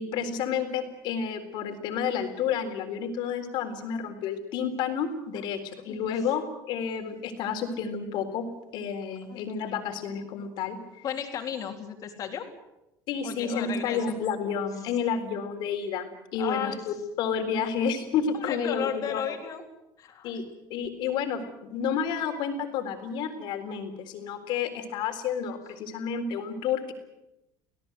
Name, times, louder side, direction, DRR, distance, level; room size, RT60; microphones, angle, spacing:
voice 1, 0.0-8.5 8.7-10.8 13.1-19.2 20.2-20.4 20.7-26.9, left 7 dB, 60° left, 6 dB, 3.9 m, -30 dB
voice 2, 11.0-12.5 13.2-14.2 16.4-16.8 18.3-19.6 20.0-20.3, left 8 dB, 40° left, 4 dB, 3.6 m, -34 dB
26.0 x 17.5 x 7.9 m, 0.88 s
cardioid pair, 150°, 9 cm